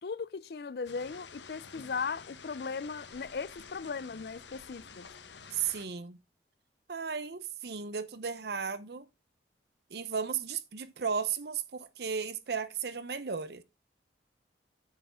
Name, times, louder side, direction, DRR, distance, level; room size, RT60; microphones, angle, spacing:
voice 1, 0.0-5.1, left 5 dB, 60° left, 0.5 m, -37 dB
sound 1, 0.8-5.9, left 5 dB, 80° left, 1.2 m, -50 dB
voice 2, 5.5-6.2 6.9-9.1 9.9-13.6, right 6 dB, 60° right, 0.7 m, -35 dB
8.3 x 7.2 x 3.6 m
head